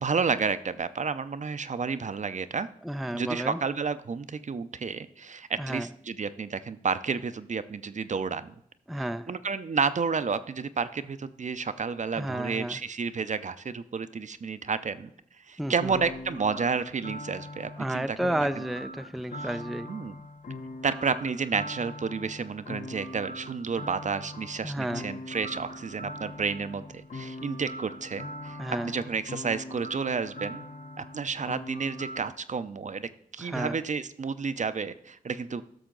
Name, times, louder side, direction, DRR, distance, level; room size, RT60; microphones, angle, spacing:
voice 1, 0.0-2.7 3.1-8.5 9.3-15.1 15.5-18.2 19.4-19.5 19.9-20.1 20.8-30.7 31.0-35.6, right 5 dB, 50° right, 0.6 m, -31 dB
voice 2, 2.8-3.6 5.6-5.9 8.9-9.3 12.1-12.8 15.6-15.9 17.8-19.9 24.6-25.1 28.6-28.9 33.4-33.8, right 1 dB, ahead, 0.4 m, -32 dB
sound 1, 15.8-32.3, left 1 dB, 55° left, 0.9 m, -41 dB
11.5 x 6.4 x 3.8 m
cardioid pair, 45°, 16 cm